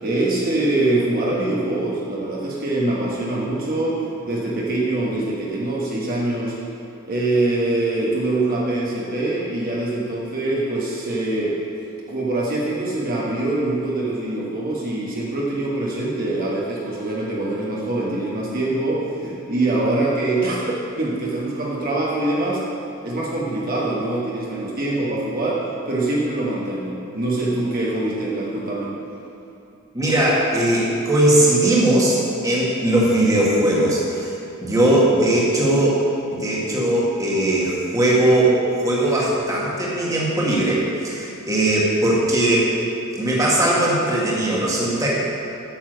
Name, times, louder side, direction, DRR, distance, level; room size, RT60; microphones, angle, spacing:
voice 1, 0.0-6.6 7.1-11.6 12.1-22.6 23.0-28.9, right 2 dB, 40° right, -5 dB, 1.4 m, -24 dB
voice 2, 29.9-32.2 32.4-34.3 34.6-36.0 36.3-42.7 43.1-45.1, right 1 dB, 15° right, -5 dB, 1.6 m, -19 dB
8.9 x 7.1 x 6.4 m, 2.8 s
head